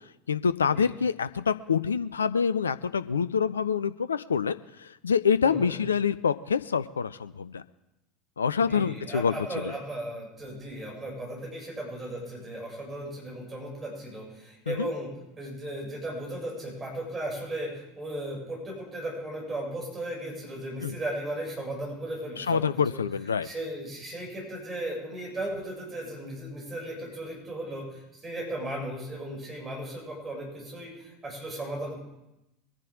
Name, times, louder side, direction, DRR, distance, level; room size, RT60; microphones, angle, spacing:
voice 1, 0.3-4.6 5.0-7.6 8.4-9.3 14.7-14.9 20.8-21.0 22.4-23.5, left 6 dB, 75° left, 14 dB, 0.4 m, -26 dB
voice 2, 5.4-5.8 8.6-15.1 15.4-22.6 22.9-23.0 23.4-32.0, right 1 dB, 20° right, -2 dB, 7.0 m, -36 dB
23.0 x 10.5 x 3.7 m, 0.90 s
figure-of-eight pair, 75°, 0 cm